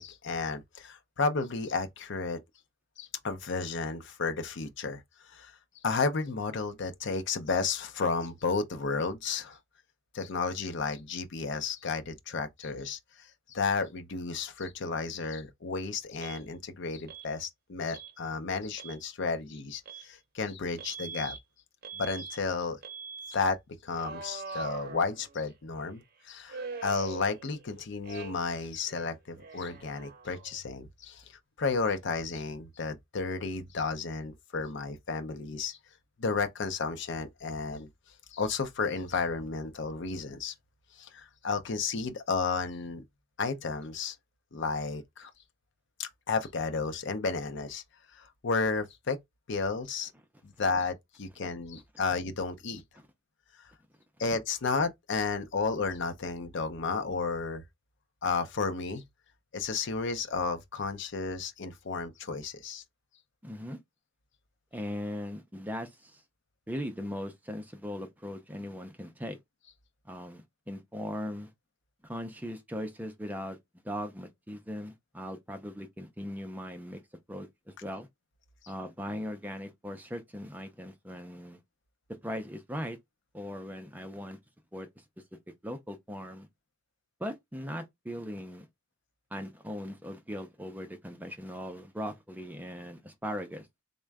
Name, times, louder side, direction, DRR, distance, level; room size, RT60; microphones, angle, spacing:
voice 1, 0.0-2.4 3.0-5.6 5.8-9.6 10.1-21.4 21.9-22.8 23.3-31.2 31.6-35.8 36.2-37.9 38.3-40.5 41.0-43.0 43.4-44.2 44.5-45.3 46.0-47.8 48.1-49.2 49.5-50.1 50.4-52.8 54.2-57.6 58.2-59.0 59.5-62.8, left 4 dB, 65° left, 0.6 m, -32 dB
Alarm, 16.2-16.4 17.1-17.3 17.9-18.1 18.7-19.0 19.9-20.1 20.8-21.4 21.8-22.4 22.8-23.4 24.0-25.5 26.5-27.7 28.0-28.6 28.9-30.6, right 4 dB, 50° right, 0.6 m, -42 dB
voice 2, 63.4-63.8 64.7-66.2 66.7-69.4 70.1-71.5 72.0-73.6 73.8-77.0 77.3-78.1 78.7-81.6 82.2-83.0 83.3-84.4 84.7-84.9 85.6-86.5 87.2-88.7 89.3-93.7, equal, 10° right, 0.5 m, -39 dB
3.6 x 2.1 x 3.4 m
head